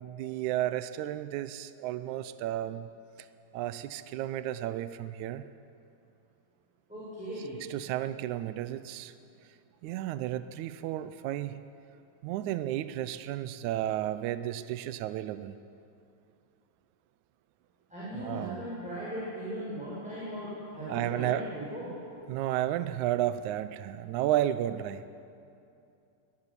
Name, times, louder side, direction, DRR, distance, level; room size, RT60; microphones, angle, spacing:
voice 1, 0.0-2.9 3.2-3.3 3.5-5.5 7.7-9.1 9.8-11.6 12.2-15.5 18.1-18.6 20.9-21.5 22.3-25.0, right 13 dB, 80° right, 12 dB, 1.9 m, -32 dB
voice 2, 6.9-7.6 17.9-21.9, equal, ahead, -10 dB, 7.3 m, -38 dB
23.0 x 14.0 x 9.8 m, 2.6 s
omnidirectional pair, 3.6 m